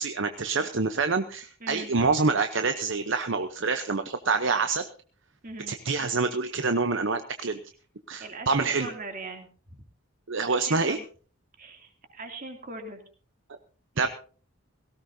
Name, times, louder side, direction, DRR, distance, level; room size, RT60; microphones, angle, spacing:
voice 1, 0.0-4.9 5.7-7.6 8.1-8.9 10.3-11.0 14.0-14.1, right 4 dB, 60° right, 8 dB, 0.9 m, -26 dB
voice 2, 1.6-1.9 5.4-5.8 8.2-9.8 10.5-11.0 11.6-13.0 13.9-14.1, right 3 dB, 40° right, 4 dB, 2.8 m, -40 dB
18.0 x 17.0 x 2.8 m, 0.40 s
head